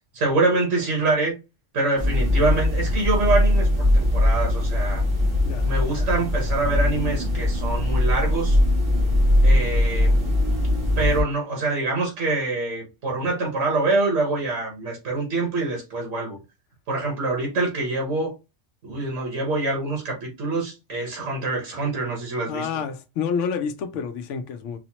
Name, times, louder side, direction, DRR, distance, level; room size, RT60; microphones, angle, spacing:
voice 1, 0.1-1.4 1.7-5.0 5.6-8.6 9.4-10.2 11.0-16.4 16.9-18.3 18.8-22.7, right 3 dB, 90° right, 1.5 m, -25 dB
sound 1, 2.0-11.2, left 1 dB, 50° right, 1.6 m, -21 dB
voice 2, 22.5-24.8, left 6 dB, 90° left, 1.0 m, -28 dB
4.8 x 2.0 x 2.8 m
omnidirectional pair, 1.2 m